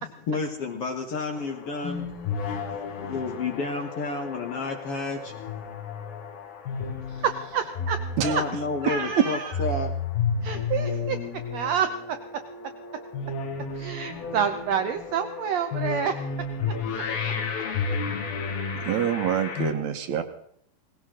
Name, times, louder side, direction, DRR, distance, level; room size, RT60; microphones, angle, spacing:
voice 1, 0.0-2.1 3.0-5.3 8.2-9.9 17.1-18.2, left 3 dB, 55° left, 3 dB, 1.9 m, -31 dB
sound 1, 1.3-19.7, left 5 dB, 90° left, 4.0 m, -32 dB
voice 2, 7.5-8.4 8.8-9.5 10.4-11.2 11.5-11.9 13.7-16.1, right 8 dB, 90° right, 8 dB, 1.5 m, -28 dB
voice 3, 18.8-20.2, right 9 dB, 65° right, 7 dB, 2.2 m, -25 dB
19.0 x 17.0 x 3.8 m, 0.67 s
omnidirectional pair, 4.1 m